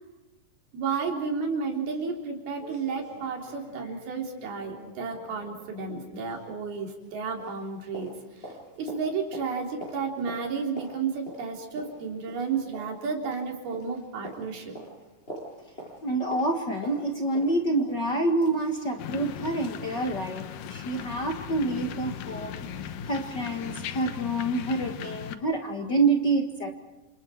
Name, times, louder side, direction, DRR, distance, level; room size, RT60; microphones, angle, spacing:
voice 1, 0.7-14.8, right 5 dB, 65° right, 1 dB, 5.5 m, -32 dB
sound 1, 2.1-2.2 2.6-7.1 7.4-19.0 19.4-19.5, right 1 dB, 15° left, 8.0 m, -45 dB
voice 2, 16.0-26.7, right 2 dB, 50° left, 3 dB, 1.2 m, -27 dB
sound 2, 19.0-25.4, left 8 dB, 65° left, 2.5 m, -38 dB
29.0 x 28.0 x 4.5 m, 1.2 s
omnidirectional pair, 4.7 m